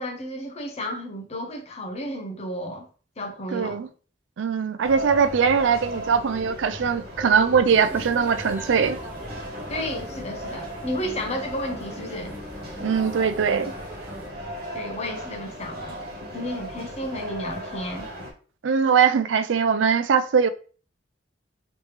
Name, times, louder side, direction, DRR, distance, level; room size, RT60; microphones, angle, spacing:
voice 1, 0.0-2.9 3.2-3.9 9.7-12.3 14.7-16.0 16.3-18.1, equal, 35° left, 0.7 m, -32 dB
voice 2, 3.5-3.9 4.4-9.0 12.8-13.7 18.6-20.5, right 6 dB, 80° right, 0.4 m, -21 dB
sound 1, 4.8-18.3, equal, 55° right, 1.3 m, -37 dB
sound 2, 7.7-14.3, equal, 10° right, 0.9 m, -41 dB
3.1 x 3.0 x 3.3 m
head